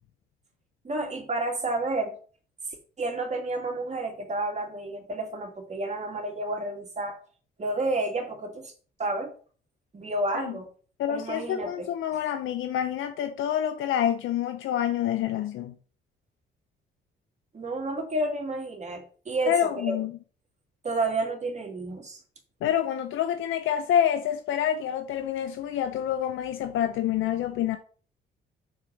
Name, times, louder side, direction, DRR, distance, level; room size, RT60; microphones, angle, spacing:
voice 1, 0.8-2.2 3.0-7.2 7.6-8.7 9.0-9.3 9.9-10.7 11.1-11.9 17.5-20.0 20.8-22.2, right 2 dB, 35° right, 2.7 m, -30 dB
voice 2, 11.0-15.7 19.5-20.1 22.6-27.8, left 10 dB, 80° left, 0.7 m, -27 dB
7.3 x 4.9 x 6.4 m
cardioid pair, 90°, 20 cm